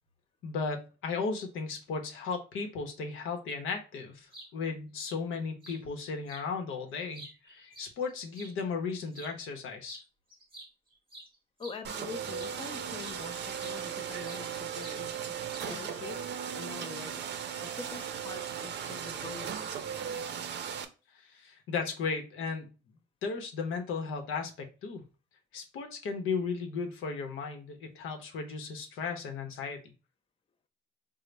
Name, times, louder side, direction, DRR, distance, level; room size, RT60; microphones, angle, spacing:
voice 1, 0.4-10.0 21.1-22.7 23.2-25.0 25.5-29.9, left 5 dB, 85° left, 0.8 m, -35 dB
sound 1, 4.3-4.5 5.0-5.2 5.6-5.8 6.3-6.5 6.9-8.5 9.1-9.4 9.8-10.1 10.3-12.6 13.0-13.2 13.6-14.5 14.8-15.0 15.5-15.9, right 2 dB, 25° right, 1.0 m, -49 dB
voice 2, 11.6-15.1 15.7-16.2 16.5-17.2 17.6-19.8, left 4 dB, 30° left, 0.5 m, -44 dB
sound 2, 11.8-20.8, right 8 dB, 60° right, 0.5 m, -37 dB
3.9 x 2.1 x 3.2 m
cardioid pair, 90°, 20 cm